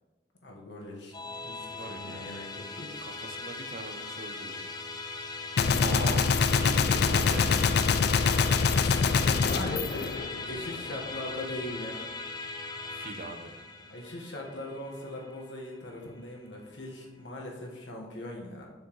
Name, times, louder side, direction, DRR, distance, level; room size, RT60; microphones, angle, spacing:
voice 1, 0.4-1.1 1.4-2.9 8.7-10.1 10.4-12.0 13.9-18.7, left 1 dB, 85° left, -1 dB, 1.4 m, -40 dB
Musical instrument, 1.1-16.6, left 3 dB, 20° left, 0.6 m, -40 dB
voice 2, 1.8-2.3 3.0-4.7 5.8-7.7 12.9-13.6, right 2 dB, 50° right, 6 dB, 0.7 m, -41 dB
Gunshot gunfire, 5.6-10.8, left 5 dB, 60° left, 0.3 m, -25 dB
7.0 x 6.1 x 3.1 m, 1.2 s
head